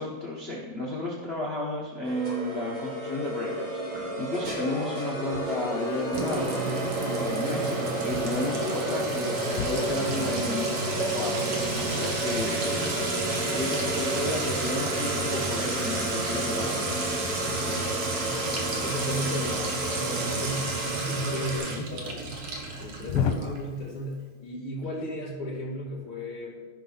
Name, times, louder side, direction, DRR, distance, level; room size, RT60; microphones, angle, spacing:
voice 1, 0.0-3.8 4.2-6.6 7.1-10.7 11.1-13.2 13.5-16.9 21.7-22.0, left 2 dB, 40° left, -3 dB, 1.0 m, -33 dB
sound 1, 2.0-21.6, right 1 dB, 75° right, 3.8 m, -32 dB
sound 2, 5.3-5.4 5.9-6.0 6.2-6.6 7.5-7.6 8.1-8.3 8.6-8.7 9.5-10.5 11.0-13.2 13.8-14.6 16.2-16.5 17.8-18.1 18.9-21.7 21.9-22.0 22.3-22.4 23.1-23.3, left 8 dB, 85° left, 1.7 m, -36 dB
Sink (filling or washing) / Trickle dribble / Fill (with liquid), 6.1-23.6, right 3 dB, 50° right, 1.6 m, -32 dB
voice 2, 17.4-18.0 18.8-22.3 22.8-26.6, equal, 70° left, -8 dB, 3.4 m, -35 dB
14.5 x 5.9 x 4.0 m, 1.4 s
omnidirectional pair, 2.3 m